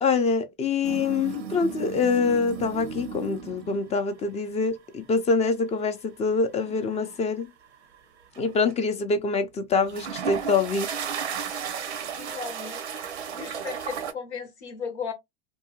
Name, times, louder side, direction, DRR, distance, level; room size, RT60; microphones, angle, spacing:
voice 1, 0.0-7.5 8.4-10.9, left 4 dB, 20° left, 0.4 m, -25 dB
sound 1, 0.8-4.0 4.5-4.8 6.3-8.0 8.4-8.7 9.7-14.1, right 7 dB, 90° right, 0.6 m, -35 dB
voice 2, 12.2-12.8 13.3-15.1, left 6 dB, 85° left, 1.0 m, -36 dB
2.6 x 2.2 x 2.7 m
hypercardioid pair, 100°, 33 cm